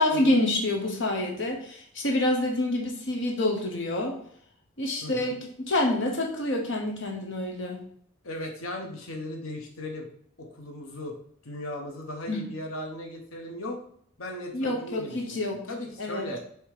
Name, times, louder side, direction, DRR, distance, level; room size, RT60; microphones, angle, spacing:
voice 1, 0.0-4.1 4.8-7.8 12.3-12.4 14.5-15.6 16.0-16.3, left 1 dB, 60° left, 1 dB, 1.1 m, -27 dB
voice 2, 5.0-5.4 8.2-10.1 10.4-11.1 11.4-13.8 14.2-15.2 15.7-16.4, left 1 dB, 80° left, 2 dB, 1.2 m, -37 dB
6.8 x 3.1 x 4.9 m, 0.63 s
head